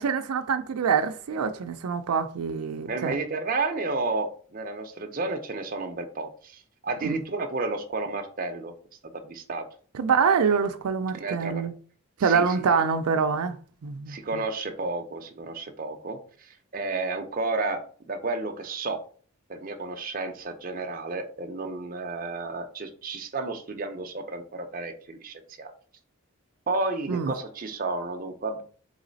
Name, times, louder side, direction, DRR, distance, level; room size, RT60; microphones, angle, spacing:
voice 1, 0.0-3.2 7.0-7.2 9.9-11.7 12.2-13.5 13.8-14.4 27.1-27.3, right 6 dB, 90° right, 0.4 m, -25 dB
voice 2, 2.9-8.7 9.1-9.7 11.1-11.6 12.2-12.6 14.1-16.2 16.7-19.0 19.5-25.7 26.7-28.6, right 3 dB, 40° right, 0.6 m, -31 dB
4.0 x 3.1 x 3.9 m
head